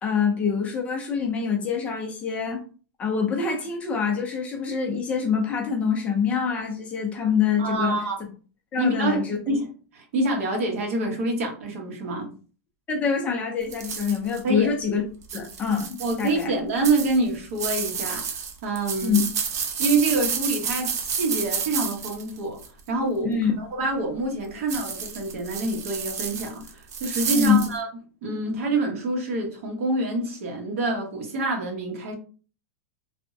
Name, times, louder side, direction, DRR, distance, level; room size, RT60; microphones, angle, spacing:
voice 1, 0.0-2.6 3.0-8.0 8.7-9.4 12.9-15.0 15.3-16.5 19.0-19.2 23.2-23.5 27.3-27.6, left 6 dB, 15° left, 0.4 m, -25 dB
voice 2, 7.6-8.2 8.8-9.7 9.9-12.3 14.4-14.7 16.0-19.2 19.8-22.6 22.9-27.9 28.2-32.1, right 2 dB, 60° right, 1.0 m, -26 dB
sound 1, 13.7-14.4 15.2-16.4 16.8-22.8 24.7-27.7, right 6 dB, 85° right, 0.6 m, -30 dB
3.3 x 2.0 x 2.6 m
supercardioid pair, 175°, 8 cm